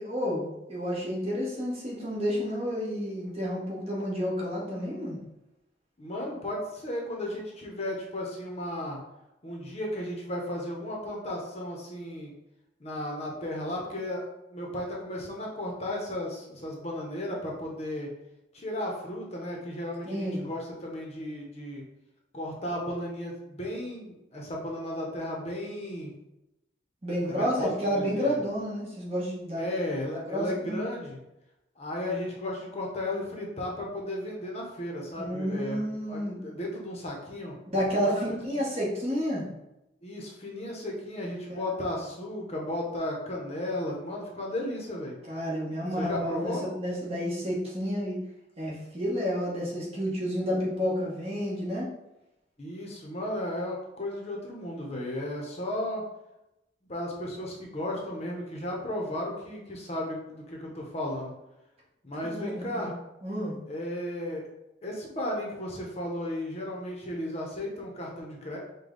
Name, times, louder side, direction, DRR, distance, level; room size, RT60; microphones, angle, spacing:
voice 1, 0.0-5.2 20.1-20.5 27.0-29.7 30.3-30.8 35.2-36.4 37.7-39.4 41.5-41.6 45.3-48.2 48.6-51.9 62.2-62.9 63.2-63.6, equal, 35° right, -5 dB, 1.2 m, -30 dB
voice 2, 6.0-9.0 9.4-12.3 12.8-14.2 14.5-18.1 18.5-21.8 22.3-26.1 27.3-28.4 29.6-31.2 31.8-37.5 37.9-38.4 40.0-45.2 46.0-46.6 52.6-56.0 56.8-61.3 62.0-62.9 63.7-64.5 64.8-68.6, left 1 dB, 35° left, -1 dB, 0.7 m, -34 dB
5.1 x 2.2 x 3.8 m, 0.92 s
head